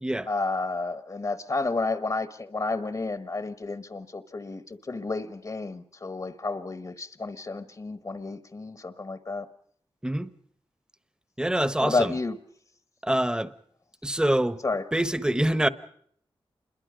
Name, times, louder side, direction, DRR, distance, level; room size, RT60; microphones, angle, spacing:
voice 1, 0.3-9.5 11.8-12.4 14.6-14.8, left 3 dB, 40° left, 1.3 m, -31 dB
voice 2, 11.4-12.1 13.0-13.5 14.0-14.6 14.9-15.7, right 1 dB, 10° right, 1.2 m, -25 dB
27.5 x 22.0 x 5.1 m
cardioid pair, 70°, 10 cm